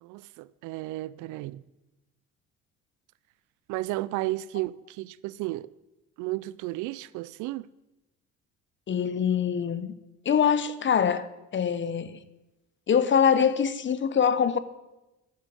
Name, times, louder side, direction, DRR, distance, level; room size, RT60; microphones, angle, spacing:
voice 1, 0.0-1.6 3.7-5.7 6.2-7.7, right 18 dB, 75° right, 0.4 m, -33 dB
voice 2, 8.9-9.9 10.2-12.2 12.9-14.6, left 7 dB, 40° left, 0.8 m, -24 dB
9.5 x 7.4 x 7.9 m
supercardioid pair, 70°, 30 cm